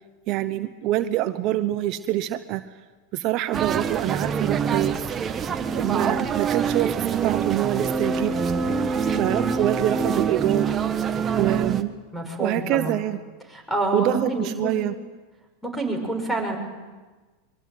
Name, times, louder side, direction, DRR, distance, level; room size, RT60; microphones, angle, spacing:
voice 1, 0.3-2.6 3.1-5.0 5.7-8.3 9.1-10.7 11.4-11.9 12.4-13.2 13.9-14.9, right 14 dB, 50° right, 11 dB, 0.9 m, -25 dB
sound 1, 3.5-11.8, right 6 dB, 25° right, 1.4 m, -25 dB
voice 2, 12.1-12.9 13.5-14.8 15.6-16.6, right 2 dB, 5° left, 4 dB, 7.2 m, -27 dB
23.5 x 23.0 x 9.3 m, 1.3 s
hypercardioid pair, 100°, 0 cm